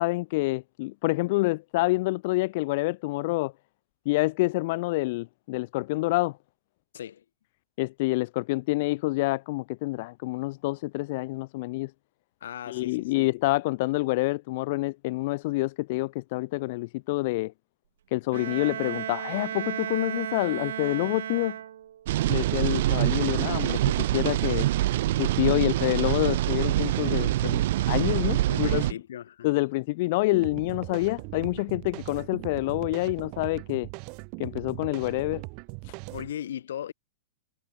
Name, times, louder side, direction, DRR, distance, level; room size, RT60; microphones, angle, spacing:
voice 1, 0.0-3.5 4.1-6.4 7.8-11.9 12.7-17.5 18.1-21.6 22.3-24.7 25.2-28.8 29.4-33.9 34.4-35.4 35.8-35.9, left 21 dB, 40° left, 0.3 m, -27 dB
voice 2, 6.9-7.2 12.4-13.3 28.5-29.5 36.1-36.9, left 10 dB, 70° left, 2.8 m, -37 dB
Bowed string instrument, 18.3-22.1, right 10 dB, 70° right, 0.8 m, -34 dB
sound 1, 22.1-28.9, right 15 dB, 50° right, 0.4 m, -25 dB
sound 2, 30.3-36.3, right 37 dB, 30° right, 1.1 m, -40 dB
supercardioid pair, 175°, 0 cm